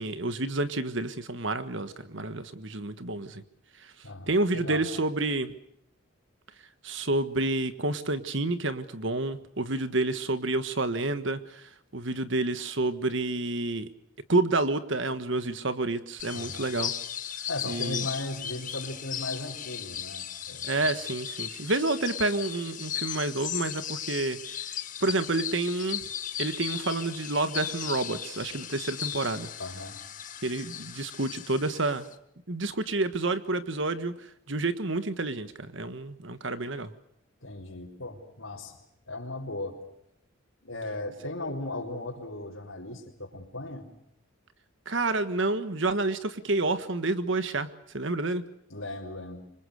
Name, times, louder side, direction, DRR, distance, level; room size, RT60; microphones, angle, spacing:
voice 1, 0.0-3.4 3.8-3.9 4.3-5.5 6.8-13.9 14.3-16.9 17.7-18.0 20.6-24.6 25.0-26.0 26.4-29.5 30.4-32.1 32.5-36.9 44.8-47.7 47.9-48.4, right 2 dB, 60° right, 11 dB, 1.5 m, -29 dB
voice 2, 4.0-4.9 16.3-16.6 17.5-20.7 29.6-30.0 37.4-38.8 39.1-39.8 40.6-43.9 48.7-49.5, left 2 dB, 70° left, -3 dB, 4.3 m, -37 dB
sound 1, 16.2-32.1, left 10 dB, 35° left, 1.6 m, -37 dB
27.5 x 25.0 x 6.6 m, 0.75 s
head